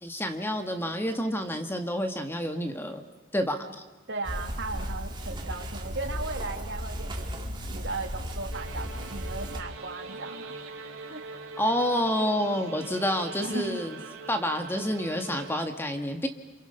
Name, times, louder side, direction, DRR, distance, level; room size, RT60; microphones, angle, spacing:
voice 1, 0.0-3.0 3.3-3.6 11.6-14.0 14.3-16.3, equal, 10° left, 5 dB, 1.8 m, -28 dB
voice 2, 4.1-10.5 11.1-11.3 13.4-13.8, right 3 dB, 55° right, 4 dB, 2.6 m, -37 dB
sound 1, 4.2-9.6, equal, 20° right, 2.3 m, -35 dB
sound 2, 8.5-15.6, right 3 dB, 75° right, 4.3 m, -42 dB
28.5 x 27.5 x 5.8 m, 1.2 s
head